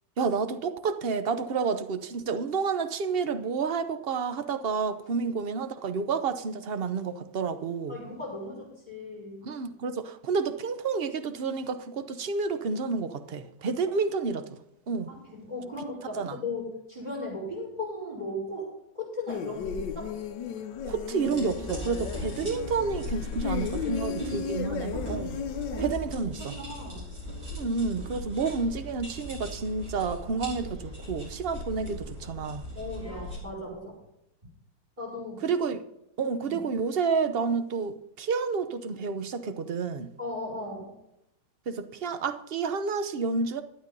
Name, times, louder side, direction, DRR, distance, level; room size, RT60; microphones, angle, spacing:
voice 1, 0.2-8.0 9.4-14.6 14.9-15.1 16.2-16.4 20.8-25.4 25.8-26.5 27.5-32.6 35.4-35.8 36.2-40.1 41.7-43.6, right 5 dB, 50° right, 0.7 m, -30 dB
voice 2, 7.9-9.4 15.1-20.1 23.8-25.0 25.7-27.1 32.7-34.0 35.0-35.4 36.4-36.6 40.2-40.9, left 1 dB, 25° right, 5.1 m, -37 dB
sound 1, 19.3-25.8, left 8 dB, 75° left, 1.4 m, -35 dB
sound 2, 21.2-33.4, equal, 65° right, 6.7 m, -39 dB
12.0 x 9.0 x 5.4 m
omnidirectional pair, 2.0 m